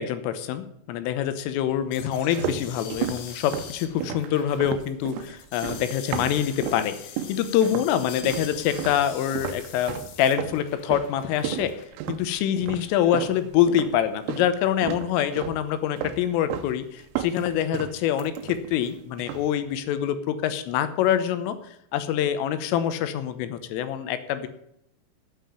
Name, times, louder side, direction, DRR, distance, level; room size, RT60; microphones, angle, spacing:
voice 1, 0.0-7.0 7.3-11.7 12.1-24.5, left 10 dB, 90° left, 11 dB, 3.5 m, -25 dB
sound 1, 1.9-11.8, left 8 dB, 65° left, 2.9 m, -43 dB
sound 2, 2.0-6.9 7.2-7.9 8.2-14.5 14.8-15.6 16.0-16.7 17.0-18.9 19.2-19.6, right 11 dB, 85° right, 3.3 m, -34 dB
9.3 x 8.8 x 8.9 m, 0.76 s
omnidirectional pair, 5.9 m